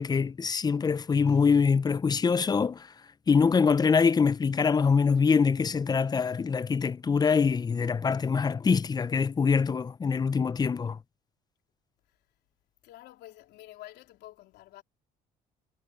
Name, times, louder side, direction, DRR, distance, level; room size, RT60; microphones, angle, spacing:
voice 1, 0.0-2.9 3.3-11.0, left 5 dB, 25° left, 0.6 m, -24 dB
voice 2, 12.8-14.8, left 15 dB, 85° left, 3.8 m, -49 dB
cardioid pair, 110°, 17 cm